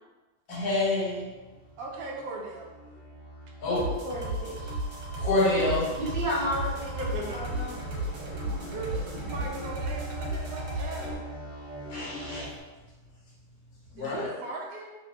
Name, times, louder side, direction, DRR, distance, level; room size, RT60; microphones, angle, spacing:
voice 1, 0.5-1.3 3.6-3.9 5.2-5.8 11.9-12.5 14.0-14.3, left 2 dB, 70° left, -5 dB, 1.4 m, -27 dB
sound 1, 1.2-12.6, equal, 5° right, 1.0 m, -42 dB
voice 2, 1.8-2.7 7.0-7.4 8.7-11.2 14.0-14.9, right 2 dB, 65° right, -1 dB, 1.0 m, -38 dB
voice 3, 3.7-4.7 5.5-5.7 6.0-7.7 14.3-14.4, equal, 45° right, -7 dB, 0.6 m, -33 dB
sound 2, 3.8-11.1, right 1 dB, 85° right, 1.4 m, -34 dB
3.2 x 2.7 x 2.7 m, 1.2 s
omnidirectional pair, 1.8 m